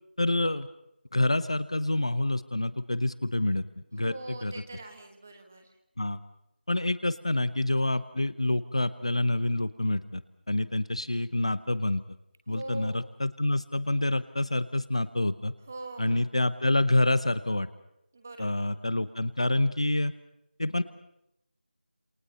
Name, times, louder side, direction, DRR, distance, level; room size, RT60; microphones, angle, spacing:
voice 1, 0.2-0.7 1.1-4.5 6.0-6.2 6.7-10.2 10.5-12.0 12.5-15.5 16.0-17.7 18.4-20.1 20.6-20.8, left 2 dB, 35° left, 16 dB, 0.8 m, -27 dB
voice 2, 4.0-5.7 12.5-13.1 15.7-16.2 18.1-18.7, right 2 dB, 15° right, 6 dB, 1.4 m, -42 dB
28.0 x 24.0 x 5.6 m, 0.80 s
figure-of-eight pair, 180°, 5 cm